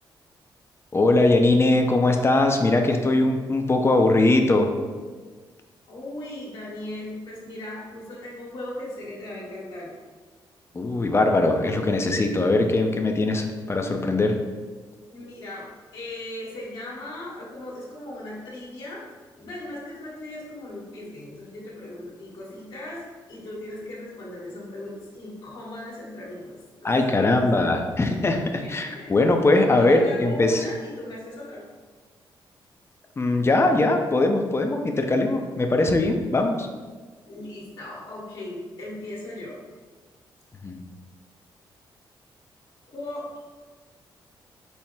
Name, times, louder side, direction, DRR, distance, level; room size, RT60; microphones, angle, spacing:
voice 1, 0.9-4.8 10.7-14.4 26.8-30.6 33.2-36.7 40.6-40.8, left 2 dB, 30° left, 4 dB, 0.6 m, -21 dB
voice 2, 5.9-9.9 15.1-19.0 19.3-27.7 28.6-29.2 29.7-31.6 37.3-39.6 42.9-43.4, left 1 dB, 75° left, -7 dB, 1.4 m, -38 dB
5.5 x 2.1 x 4.4 m, 1.4 s
cardioid pair, 80°, 9 cm